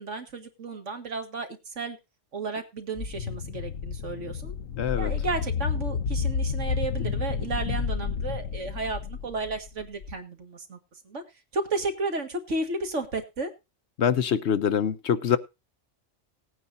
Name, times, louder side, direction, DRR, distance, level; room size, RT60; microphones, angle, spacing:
voice 1, 0.0-2.0 2.3-4.5 5.0-10.8 11.1-11.2 11.5-13.5, right 3 dB, 70° right, 6 dB, 2.1 m, -33 dB
sound 1, 3.0-10.1, left 6 dB, 85° left, 1.3 m, -30 dB
voice 2, 4.8-5.1 14.0-15.4, left 8 dB, 65° left, 13 dB, 1.0 m, -24 dB
18.5 x 9.4 x 2.6 m, 0.25 s
omnidirectional pair, 1.3 m